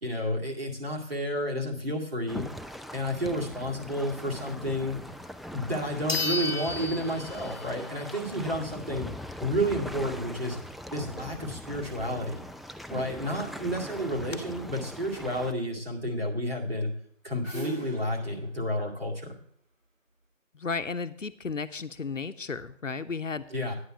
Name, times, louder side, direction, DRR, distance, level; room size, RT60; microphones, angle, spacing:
voice 1, 0.0-2.5 2.9-5.0 5.5-9.1 9.4-10.6 10.9-12.4 12.9-16.9 17.2-19.3 23.5-23.7, equal, 50° right, -1 dB, 2.3 m, -31 dB
sound 1, 2.3-15.5, equal, ahead, 0.3 m, -41 dB
sound 2, 5.3-5.4 6.1-7.8 8.2-8.3 12.9-13.0 13.3-13.4 13.9-14.4, left 3 dB, 50° left, 1.0 m, -33 dB
sound 3, 16.9-20.1, right 4 dB, 75° right, 2.0 m, -45 dB
voice 2, 20.5-23.4, left 4 dB, 70° left, 11 dB, 0.8 m, -34 dB
9.8 x 5.4 x 7.0 m, 0.63 s
figure-of-eight pair, 180°, 39 cm